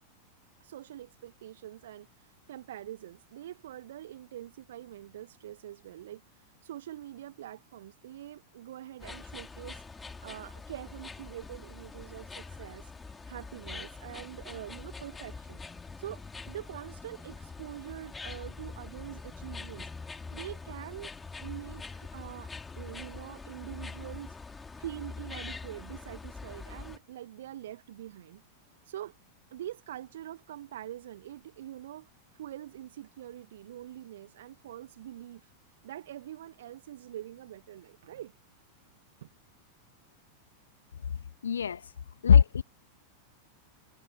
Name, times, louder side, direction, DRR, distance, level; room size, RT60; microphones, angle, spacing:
voice 1, 0.6-9.8 10.2-15.6 16.0-21.1 21.4-28.4 28.8-29.2 29.5-35.5 35.8-38.3 39.2-39.3, right 12 dB, 60° right, 1.6 m, -44 dB
sound 1, 9.0-27.0, left 4 dB, 10° left, 3.5 m, -44 dB
voice 2, 41.4-41.8 42.2-42.6, left 7 dB, 70° left, 1.3 m, -20 dB
figure-of-eight pair, 90°, 0 cm